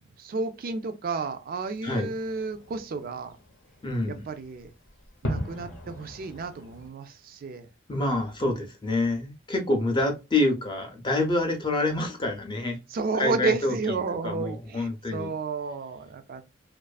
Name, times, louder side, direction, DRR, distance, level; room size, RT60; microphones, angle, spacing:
voice 1, 0.2-3.4 4.1-4.7 5.2-7.7 12.9-16.4, right 4 dB, 45° right, 0.3 m, -31 dB
Fireworks, 1.6-6.9, equal, 65° left, 0.7 m, -39 dB
voice 2, 3.8-4.2 7.9-12.8 13.2-13.7 14.2-15.3, left 2 dB, 25° left, 0.4 m, -27 dB
2.4 x 2.4 x 2.2 m
head